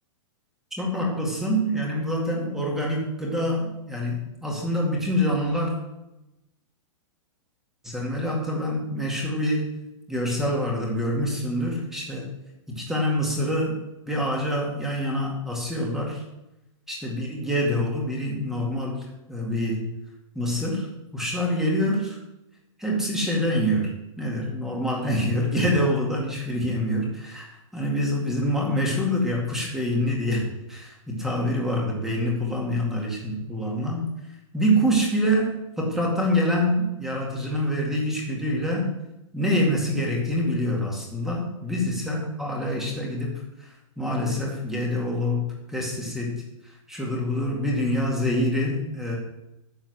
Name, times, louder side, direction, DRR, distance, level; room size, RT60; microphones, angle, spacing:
voice 1, 0.8-5.7 7.8-9.7 10.1-12.3 12.7-13.7 14.1-16.2 16.9-19.9 20.3-20.9 21.1-22.2 22.8-27.5 27.7-30.4 30.7-34.1 34.5-38.9 39.3-43.4 44.0-46.4 46.9-49.2, equal, ahead, -2 dB, 2.1 m, -26 dB
10.5 x 6.9 x 7.9 m, 0.93 s
hypercardioid pair, 165°, 17 cm